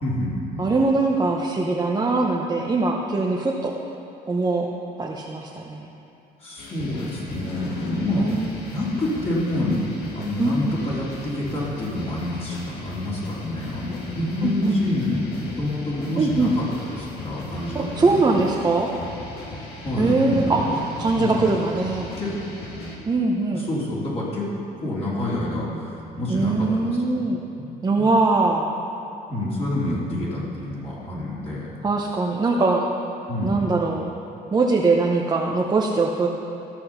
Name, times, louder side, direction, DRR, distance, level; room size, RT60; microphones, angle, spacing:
voice 1, 0.0-0.8 6.4-8.3 8.6-9.8 10.1-18.4 19.8-20.7 21.2-21.5 22.2-22.3 23.5-24.5 24.8-27.2 28.0-28.1 29.3-31.7 32.7-32.8 33.3-33.7, left 1 dB, 35° left, -7 dB, 3.0 m, -27 dB
voice 2, 0.6-3.7 4.3-4.7 5.0-5.9 8.1-8.5 10.4-10.8 14.4-14.8 16.2-16.5 17.7-18.9 20.0-20.6 21.0-22.1 23.0-23.6 26.3-27.4 27.8-28.7 31.8-32.9 33.4-34.1 34.5-36.3, right 3 dB, 25° right, -2 dB, 0.8 m, -22 dB
sound 1, 6.6-23.0, left 2 dB, 75° left, 1.8 m, -38 dB
14.0 x 6.2 x 5.8 m, 2.8 s
cardioid pair, 110°, 17 cm